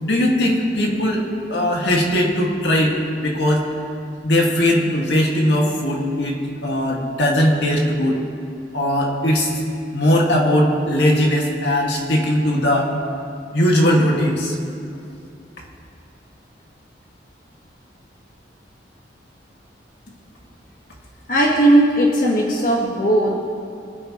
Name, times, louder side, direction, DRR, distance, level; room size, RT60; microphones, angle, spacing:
voice 1, 0.0-1.2 1.5-3.7 4.2-8.2 8.7-9.5 9.9-12.9 13.5-14.6, equal, 70° left, -1 dB, 2.1 m, -19 dB
voice 2, 21.3-23.3, right 1 dB, 50° left, -3 dB, 1.6 m, -17 dB
25.5 x 9.9 x 3.2 m, 2.5 s
head